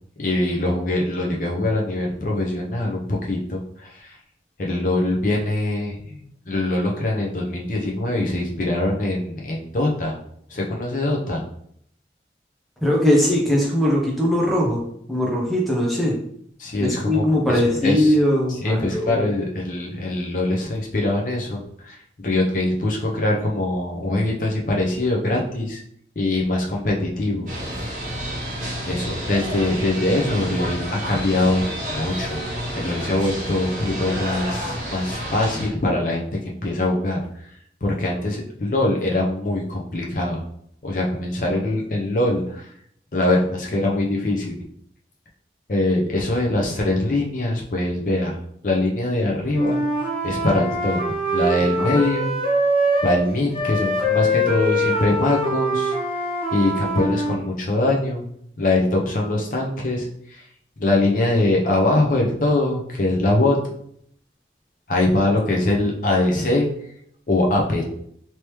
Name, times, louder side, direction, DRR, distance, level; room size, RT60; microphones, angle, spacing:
voice 1, 0.2-4.2 4.6-10.2 10.5-11.4 16.6-17.2 17.5-18.2 18.6-25.8 26.2-27.5 28.9-32.4 32.7-37.3 37.8-40.4 40.8-42.7 43.1-44.6 45.7-48.4 48.6-49.8 50.2-51.0 51.3-52.3 53.0-55.9 56.5-58.2 58.6-60.4 60.8-63.6 64.9-66.7 67.3-67.8, left 2 dB, 45° left, -1 dB, 0.6 m, -23 dB
voice 2, 12.8-14.8 15.1-16.2 16.8-19.3 51.6-51.9, left 1 dB, ahead, -3 dB, 0.7 m, -20 dB
sound 1, 27.5-35.7, equal, 45° right, 1.0 m, -30 dB
Wind instrument woodwind instrument, 49.5-53.2 53.5-57.4, equal, 30° left, 1.2 m, -23 dB
3.3 x 3.0 x 3.0 m, 0.67 s
head